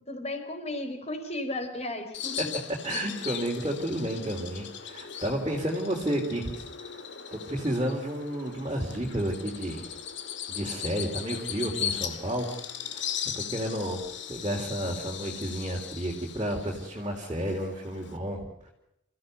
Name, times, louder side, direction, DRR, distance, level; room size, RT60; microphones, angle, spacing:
voice 1, 0.1-2.5, left 1 dB, 30° left, 7 dB, 4.3 m, -34 dB
Bird vocalization bird call bird song, 2.1-18.2, left 8 dB, 55° left, 2.3 m, -38 dB
voice 2, 2.8-6.5 6.8-7.0 7.3-9.8 10.5-12.5 12.8-14.0 14.3-18.7, right 1 dB, 20° right, -1 dB, 3.6 m, -31 dB
28.5 x 15.5 x 8.1 m, 0.82 s
head